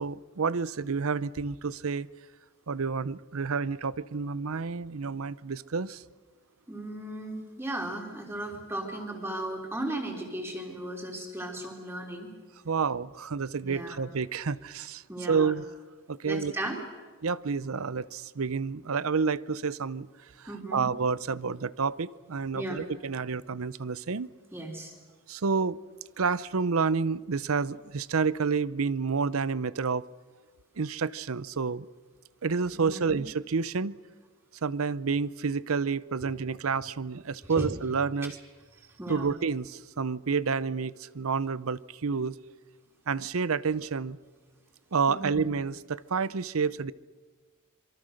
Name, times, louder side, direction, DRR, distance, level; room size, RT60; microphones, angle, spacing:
voice 1, 0.0-2.1 2.7-6.0 12.6-15.6 16.1-16.5 17.2-20.1 20.4-24.3 25.3-25.8 26.2-30.0 30.8-31.9 32.4-34.0 34.6-38.4 39.1-42.3 43.1-44.2 44.9-46.9, right 5 dB, 85° right, 19 dB, 0.7 m, -29 dB
voice 2, 6.7-12.3 13.6-14.0 15.1-15.5 16.2-16.8 20.5-20.9 22.5-22.9 24.5-24.9 32.7-33.2 36.2-36.3 37.6-37.7 39.0-39.3 45.1-45.4, right 1 dB, 10° right, 1 dB, 3.7 m, -36 dB
26.5 x 23.5 x 6.5 m, 1.4 s
head